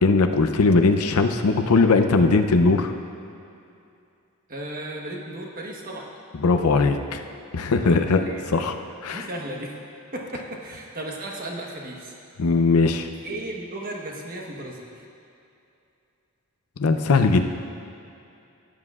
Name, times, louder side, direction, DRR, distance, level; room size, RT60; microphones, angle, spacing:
voice 1, 0.0-2.9 6.4-7.2 7.5-8.2 8.5-8.7 9.0-9.2 12.4-13.1 16.8-17.4, left 3 dB, 85° left, 7 dB, 0.6 m, -19 dB
voice 2, 4.5-6.0 7.8-8.4 9.1-9.8 10.1-12.1 13.2-14.9, right 1 dB, 40° right, -1 dB, 1.2 m, -35 dB
15.5 x 9.6 x 2.4 m, 2.6 s
head